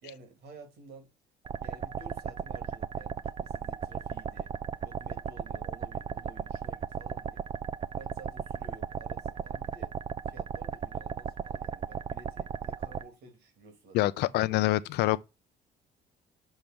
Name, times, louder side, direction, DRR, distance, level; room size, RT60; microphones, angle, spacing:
voice 1, 0.0-1.1 1.6-4.5 4.8-7.5 7.9-9.9 10.3-14.1 14.8-14.9, right 4 dB, 80° right, 2.7 m, -52 dB
sound 1, 1.5-13.0, right 7 dB, 30° right, 0.4 m, -36 dB
voice 2, 13.9-15.2, left 16 dB, 80° left, 0.5 m, -26 dB
6.5 x 3.5 x 5.9 m
cardioid pair, 110°, 17 cm